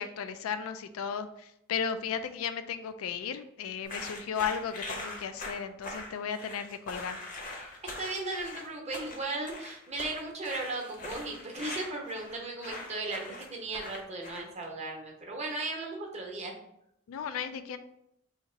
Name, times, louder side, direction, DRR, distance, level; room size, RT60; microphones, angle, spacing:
voice 1, 0.0-7.2 17.1-17.8, left 7 dB, 80° left, 10 dB, 0.3 m, -35 dB
sound 1, 3.8-14.6, left 2 dB, 40° left, 0.7 m, -42 dB
voice 2, 7.8-16.5, right 2 dB, 30° right, 0 dB, 0.8 m, -36 dB
2.8 x 2.8 x 4.4 m, 0.78 s
head